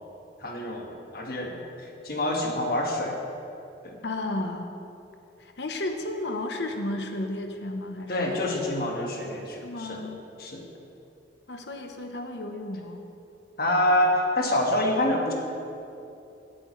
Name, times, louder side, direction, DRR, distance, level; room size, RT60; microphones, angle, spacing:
voice 1, 0.4-0.9 1.1-1.6 2.0-3.2 3.8-4.0 8.1-10.0 10.4-10.7 13.6-15.3, left 1 dB, 55° left, 1 dB, 1.3 m, -26 dB
voice 2, 4.0-4.7 5.4-8.3 9.6-10.2 11.5-13.0, left 2 dB, 70° left, 5 dB, 0.9 m, -33 dB
17.0 x 8.6 x 3.1 m, 2.8 s
head